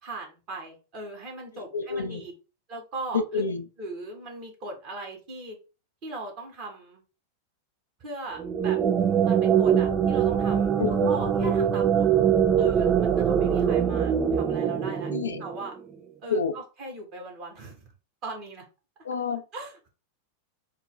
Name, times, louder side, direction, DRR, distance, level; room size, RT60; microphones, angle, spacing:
voice 1, 0.0-2.3 2.7-3.4 3.8-5.6 6.0-7.0 8.0-8.8 9.2-10.7 11.0-12.1 12.6-15.1 15.4-15.7 16.2-17.9 18.2-18.6 19.5-19.9, right 2 dB, 35° right, 1.6 m, -39 dB
voice 2, 1.7-2.2 3.1-3.7 10.8-11.2 15.1-15.4 16.3-16.6 19.0-19.4, left 5 dB, 70° left, 0.5 m, -28 dB
sound 1, 8.3-15.8, right 8 dB, 20° right, 0.5 m, -23 dB
3.9 x 2.1 x 3.9 m
figure-of-eight pair, 90°, 0 cm